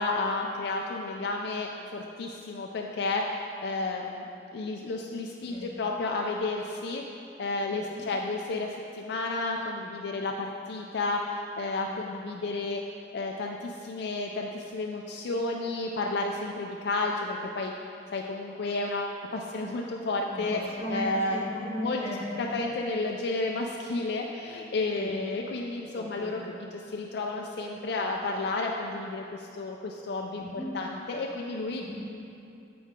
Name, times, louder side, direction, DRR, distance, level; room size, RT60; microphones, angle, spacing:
voice 1, 0.0-7.0 7.4-12.8 13.1-17.7 18.1-20.6 20.9-21.4 21.8-26.4 26.7-30.5 30.7-31.8, left 2 dB, 60° left, 0 dB, 0.4 m, -32 dB
voice 2, 7.7-8.1 11.9-12.2 20.2-22.5 24.9-25.1 26.0-26.6 30.4-30.8 31.7-32.2, left 1 dB, 30° left, -2 dB, 0.9 m, -37 dB
7.6 x 5.5 x 3.6 m, 2.6 s
head